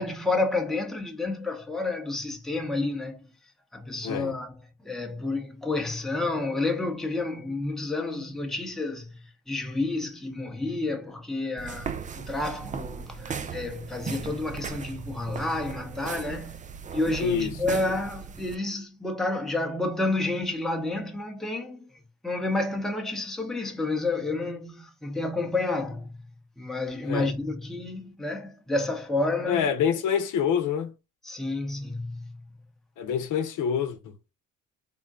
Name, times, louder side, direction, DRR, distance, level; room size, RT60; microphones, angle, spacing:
voice 1, 0.0-3.3 3.7-4.6 4.8-16.6 16.9-21.9 22.2-26.3 26.6-29.7 31.2-32.5, left 2 dB, ahead, 0.8 m, -30 dB
voice 2, 4.0-4.3 17.2-17.6 27.0-27.3 29.5-30.9 33.0-34.1, left 7 dB, 65° left, 0.8 m, -26 dB
sound 1, 11.6-18.6, right 6 dB, 25° right, 0.3 m, -37 dB
3.7 x 2.1 x 3.7 m
supercardioid pair, 85°, 34 cm